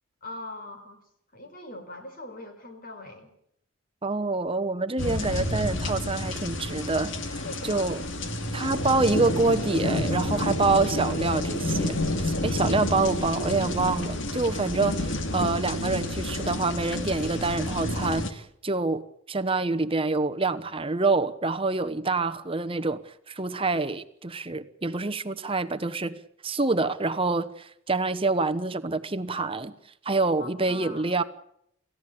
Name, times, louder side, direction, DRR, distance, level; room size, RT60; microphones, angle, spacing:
voice 1, 0.2-1.0 1.3-3.3 7.4-7.9 10.3-10.6 12.7-12.9 30.4-31.1, left 2 dB, 45° left, 4.6 m, -41 dB
voice 2, 4.0-8.0 8.5-26.2 26.4-29.7 30.0-31.2, right 3 dB, 25° right, 1.0 m, -27 dB
sound 1, 5.0-18.3, left 1 dB, 65° left, 2.4 m, -29 dB
28.5 x 16.0 x 8.6 m
head